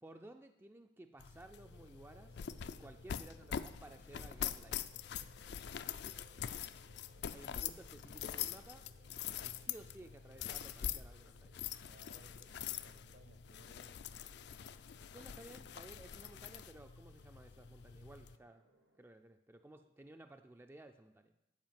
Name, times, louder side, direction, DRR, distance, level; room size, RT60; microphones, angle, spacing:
voice 1, 0.0-2.4 2.7-4.8 7.3-8.9 9.4-11.5 15.1-18.7 19.0-21.3, right 1 dB, 10° right, 6 dB, 0.3 m, -56 dB
sound 1, 1.2-18.4, left 9 dB, 60° left, 0.4 m, -44 dB
sound 2, 1.5-19.0, right 2 dB, 85° right, 1.3 m, -69 dB
voice 2, 11.9-14.0, right 3 dB, 60° right, 9 dB, 0.9 m, -64 dB
10.5 x 4.8 x 7.5 m, 0.88 s
head